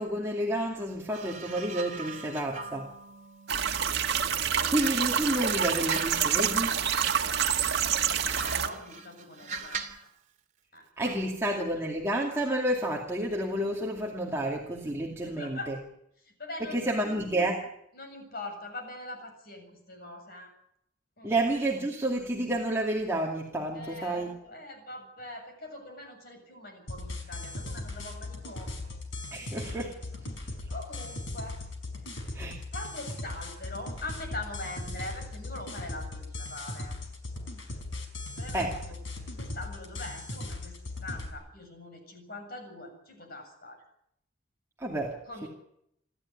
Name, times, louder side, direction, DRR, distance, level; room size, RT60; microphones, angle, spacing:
voice 1, 0.0-2.9 4.2-6.7 11.0-15.7 16.7-17.7 21.2-24.3 29.3-30.0 32.3-32.6 38.5-38.7 44.8-45.5, right 1 dB, 15° right, -1 dB, 2.4 m, -30 dB
sound 1, 1.1-4.4 4.8-10.1 11.0-11.3, right 4 dB, 40° right, 2.9 m, -42 dB
sound 2, 3.5-8.7, right 8 dB, 55° right, 1.8 m, -27 dB
voice 2, 4.2-4.9 8.2-10.1 10.7-11.2 11.4-11.6 15.2-15.8 16.3-17.2 17.9-20.5 21.2-21.3 23.7-28.9 29.6-29.9 30.7-31.6 32.7-37.0 38.4-39.0 39.4-43.8 45.1-45.5, left 2 dB, 50° left, 5 dB, 7.2 m, -43 dB
sound 3, 26.9-41.3, left 2 dB, 75° left, 5.1 m, -38 dB
28.5 x 12.5 x 9.9 m, 0.76 s
head